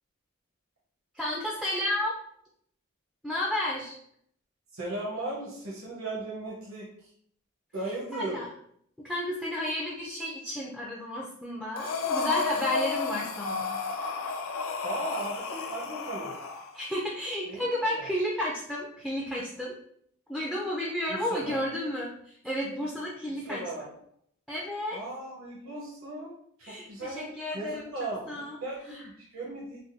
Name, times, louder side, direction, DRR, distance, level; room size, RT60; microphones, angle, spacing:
voice 1, 1.1-2.1 3.2-3.9 8.1-8.5 9.0-13.7 16.7-19.7 20.3-23.6 24.5-25.0 26.6-27.9 28.3-28.6, left 1 dB, 5° left, -4 dB, 0.3 m, -32 dB
voice 2, 4.7-7.1 7.7-8.4 14.8-16.3 17.5-18.1 21.1-21.6 23.3-23.9 24.9-26.3 26.7-28.3 28.6-29.8, right 2 dB, 75° right, -5 dB, 0.9 m, -37 dB
Breathing, 11.8-16.7, left 4 dB, 75° left, 0.4 m, -32 dB
3.5 x 2.2 x 2.6 m, 0.67 s
head